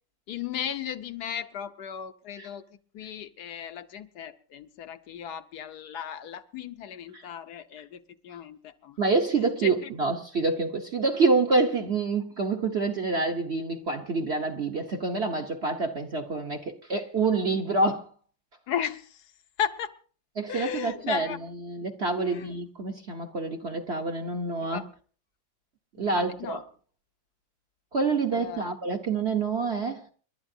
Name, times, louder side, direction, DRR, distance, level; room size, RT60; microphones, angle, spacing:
voice 1, 0.3-2.6 2.9-9.0 9.4-9.7 18.7-19.2 19.6-19.9 20.5-21.4 22.2-22.6 24.7-24.9 26.0-26.6 28.3-28.7, left 8 dB, 65° left, 1.3 m, -35 dB
voice 2, 9.0-18.0 20.4-24.9 26.0-26.6 27.9-30.0, right 3 dB, 45° right, 1.0 m, -27 dB
29.5 x 12.0 x 2.7 m
omnidirectional pair, 2.0 m